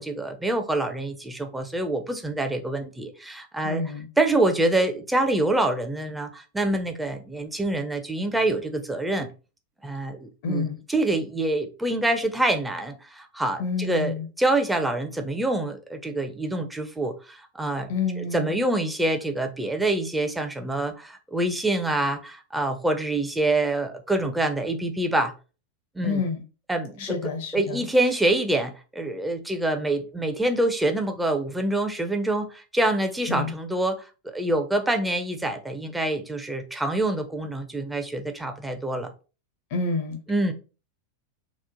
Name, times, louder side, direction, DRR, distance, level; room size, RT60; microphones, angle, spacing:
voice 1, 0.0-3.8 4.2-9.3 9.8-10.6 10.9-17.9 18.2-25.3 26.0-26.2 26.7-27.1 27.5-39.1 40.3-40.5, right 2 dB, 5° right, 0.4 m, -26 dB
voice 2, 3.6-4.1 10.4-10.8 13.6-14.3 17.9-18.6 26.0-26.4 27.0-27.9 33.3-33.5 39.7-40.2, left 4 dB, 50° left, 0.5 m, -28 dB
2.9 x 2.0 x 2.5 m
figure-of-eight pair, 90°, 0 cm